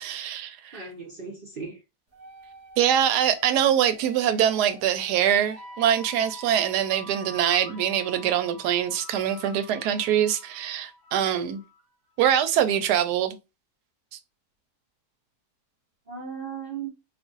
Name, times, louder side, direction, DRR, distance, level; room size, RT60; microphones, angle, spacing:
voice 1, 0.0-0.9 2.8-11.6 12.2-13.4, right 10 dB, 80° right, 1.1 m, -24 dB
voice 2, 0.7-1.8 16.1-16.9, right 6 dB, 50° right, 0.6 m, -36 dB
sound 1, 2.1-11.8, equal, 30° right, 1.0 m, -46 dB
2.6 x 2.5 x 3.7 m
omnidirectional pair, 1.7 m